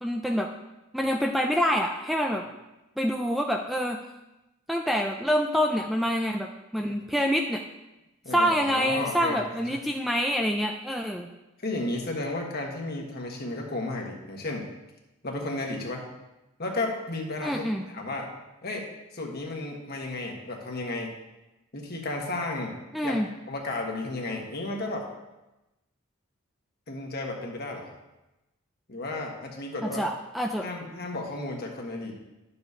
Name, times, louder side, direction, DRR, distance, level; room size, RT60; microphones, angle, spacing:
voice 1, 0.0-0.5 0.9-2.4 3.0-4.0 4.7-7.6 8.3-11.3 17.4-17.8 22.9-23.3 29.9-30.7, equal, ahead, 2 dB, 0.3 m, -26 dB
voice 2, 8.2-9.4 9.7-9.8 11.6-14.7 15.2-16.0 16.6-18.3 18.6-18.9 19.1-21.2 21.7-22.8 23.0-23.2 23.5-25.1 26.9-27.9 28.9-30.0 30.6-32.1, left 2 dB, 50° left, 1 dB, 1.3 m, -33 dB
11.5 x 7.0 x 2.8 m, 1.0 s
head